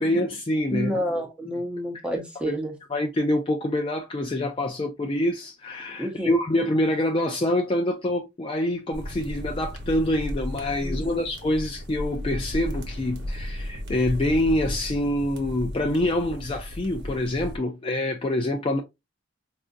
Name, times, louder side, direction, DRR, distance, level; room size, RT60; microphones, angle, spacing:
voice 1, 0.0-0.9 2.5-2.6 2.9-18.8, left 1 dB, 25° left, 0.3 m, -26 dB
voice 2, 0.7-2.7 6.0-6.3 10.8-11.3, equal, 5° right, 0.7 m, -29 dB
sound 1, 8.9-17.6, equal, 50° right, 1.0 m, -34 dB
4.9 x 2.4 x 2.5 m
head